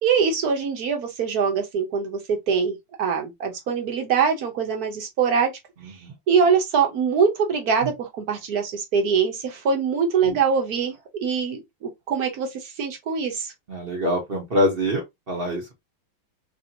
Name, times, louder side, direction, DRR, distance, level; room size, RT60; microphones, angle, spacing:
voice 1, 0.0-5.5 6.3-11.0 11.2-13.5, right 6 dB, 60° right, 1.0 m, -23 dB
voice 2, 5.8-6.1 7.8-7.9 10.2-10.4 13.7-15.8, equal, 45° right, 0.8 m, -25 dB
3.4 x 2.7 x 2.6 m
omnidirectional pair, 2.2 m